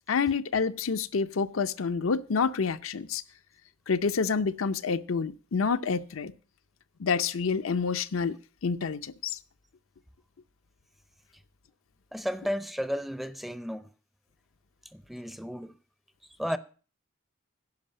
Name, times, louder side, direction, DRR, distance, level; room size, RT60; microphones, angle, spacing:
voice 1, 0.1-3.2 3.9-6.3 7.0-8.4 8.6-9.3, left 5 dB, 85° left, 0.6 m, -28 dB
voice 2, 12.1-13.9 14.9-15.8 16.4-16.6, equal, ahead, 0.5 m, -33 dB
10.5 x 5.4 x 8.6 m
head